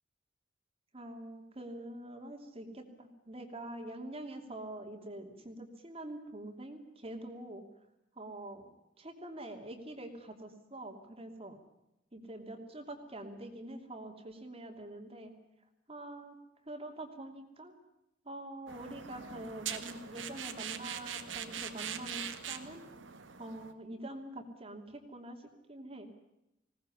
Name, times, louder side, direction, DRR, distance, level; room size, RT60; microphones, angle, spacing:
voice 1, 0.9-7.6 8.2-8.7 9.0-11.6 12.1-15.3 15.9-16.4 16.7-17.7 18.2-22.9 23.4-26.1, right 1 dB, 30° right, 4 dB, 2.8 m, -45 dB
sound 1, 18.7-23.7, right 8 dB, 80° right, 1.9 m, -42 dB
20.5 x 18.0 x 9.8 m, 0.89 s
head